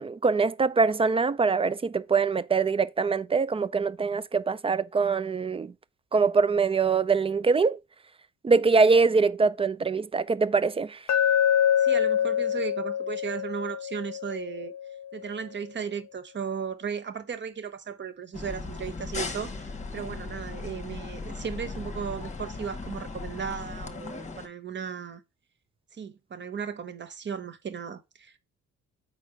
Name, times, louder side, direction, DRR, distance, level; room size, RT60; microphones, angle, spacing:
voice 1, 0.0-5.7 6.1-7.8 8.4-11.0, right 4 dB, 20° right, 0.3 m, -23 dB
Glass, 11.1-15.2, left 9 dB, 65° left, 0.7 m, -26 dB
voice 2, 11.8-14.7 15.1-25.2 25.9-28.4, right 7 dB, 40° right, 0.9 m, -36 dB
sound 1, 18.3-24.5, left 3 dB, 25° left, 1.0 m, -37 dB
5.0 x 4.2 x 4.9 m
cardioid pair, 90°, 30 cm